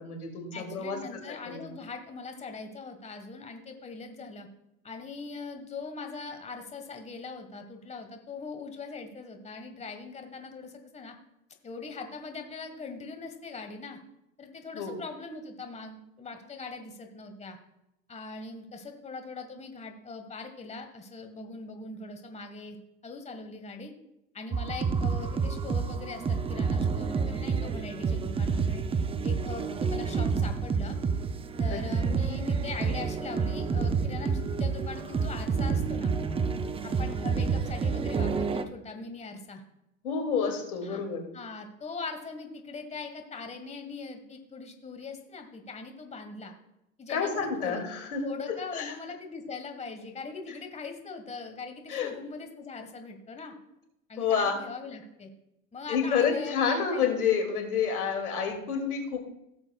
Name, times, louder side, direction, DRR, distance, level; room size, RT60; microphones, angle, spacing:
voice 1, 0.0-1.0 1.3-1.7 14.7-15.0 31.7-31.8 40.0-41.2 47.1-48.3 48.7-49.0 51.9-52.1 54.2-54.6 55.9-59.2, left 6 dB, 90° left, 4 dB, 2.5 m, -29 dB
voice 2, 0.5-4.5 4.8-11.1 11.6-14.0 14.4-17.6 18.1-22.8 23.0-23.9 24.3-28.8 29.2-31.0 31.6-36.1 36.8-39.6 40.8-41.0 41.3-46.5 47.0-47.8 48.2-53.5 54.1-55.3 55.7-57.4, left 4 dB, 15° left, 5 dB, 1.5 m, -41 dB
sound 1, 24.5-38.6, right 5 dB, 15° right, 0.5 m, -29 dB
15.5 x 7.7 x 2.3 m, 0.85 s
hypercardioid pair, 100°, 43 cm